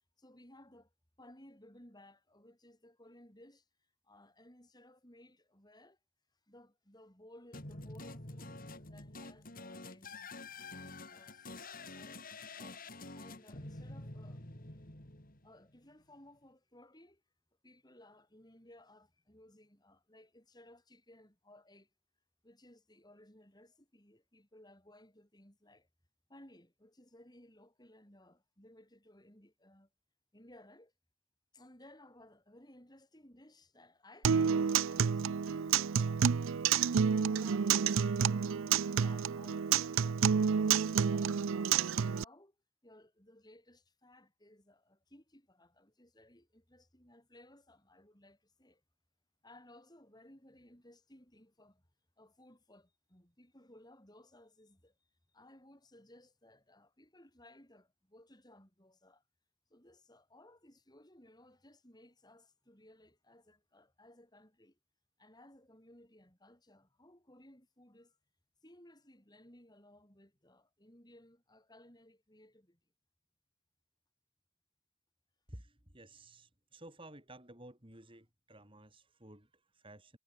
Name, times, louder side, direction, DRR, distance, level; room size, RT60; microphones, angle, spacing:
voice 1, 0.2-0.9 1.2-3.7 4.0-6.0 6.5-10.3 10.7-12.3 12.6-14.8 15.4-17.2 17.6-21.9 22.4-25.9 26.3-29.9 30.3-30.9 31.5-36.6 37.0-40.2 40.5-42.6 42.8-48.8 49.4-51.9 52.2-54.9 55.3-59.2 59.7-64.8 65.2-68.2 68.6-72.8, left 1 dB, 20° left, 6.6 m, -60 dB
sound 1, 7.5-15.8, left 2 dB, 40° left, 3.6 m, -48 dB
Acoustic guitar, 34.2-42.2, right 7 dB, 70° right, 0.5 m, -29 dB
voice 2, 75.5-80.2, right 1 dB, 25° right, 6.5 m, -54 dB
head